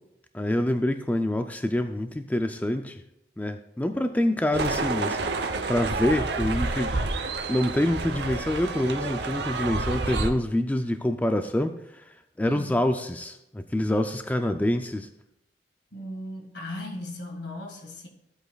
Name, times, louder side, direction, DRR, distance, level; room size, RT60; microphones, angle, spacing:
voice 1, 0.3-3.0 3.4-7.0 7.5-15.1, left 1 dB, 10° left, 7 dB, 0.3 m, -26 dB
sound 1, 4.5-10.3, right 3 dB, 65° right, 0.8 m, -29 dB
voice 2, 12.4-12.8 15.9-18.1, left 1 dB, 75° left, 3 dB, 1.7 m, -37 dB
15.5 x 8.0 x 2.3 m, 0.82 s
head